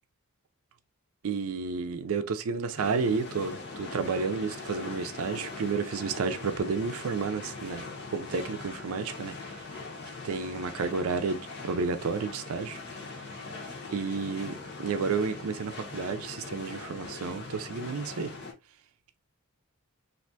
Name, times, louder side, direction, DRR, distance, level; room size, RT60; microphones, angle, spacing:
voice 1, 1.2-9.4 10.2-12.8 13.9-18.3, right 5 dB, 70° right, 0.4 m, -31 dB
sound 1, 2.8-18.5, left 3 dB, 50° left, 0.9 m, -41 dB
3.3 x 2.5 x 2.6 m
head